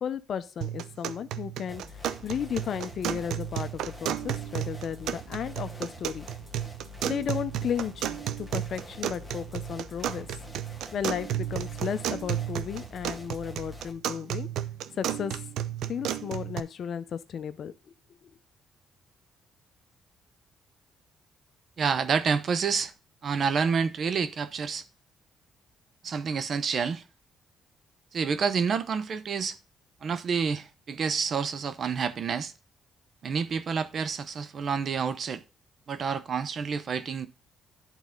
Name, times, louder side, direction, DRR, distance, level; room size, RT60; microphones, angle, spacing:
voice 1, 0.0-1.8 2.2-6.3 7.1-10.3 10.9-14.5 15.0-15.3 15.9-17.7 18.2-18.3, left 8 dB, 60° left, 0.7 m, -34 dB
sound 1, 0.6-16.6, right 11 dB, 85° right, 0.5 m, -33 dB
sound 2, 1.7-13.9, left 2 dB, ahead, 1.6 m, -46 dB
voice 2, 21.8-22.9 23.2-24.8 26.0-27.0 28.1-29.6 30.0-32.5 33.2-35.4 35.9-37.3, right 6 dB, 55° right, 0.8 m, -28 dB
11.0 x 4.2 x 3.8 m
cardioid pair, 90°, 0 cm